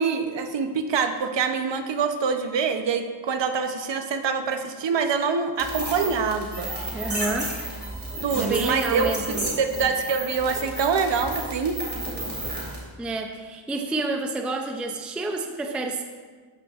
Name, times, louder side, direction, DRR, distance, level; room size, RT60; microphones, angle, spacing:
voice 1, 0.0-6.7 8.2-11.8, right 5 dB, 65° right, 7 dB, 0.7 m, -25 dB
sound 1, 5.6-12.8, right 1 dB, 20° right, 2.2 m, -32 dB
voice 2, 6.9-7.5 8.3-9.4 13.0-16.0, right 2 dB, 5° right, 3 dB, 0.3 m, -29 dB
13.0 x 5.2 x 2.4 m, 1.5 s
wide cardioid pair, 160°, 48 cm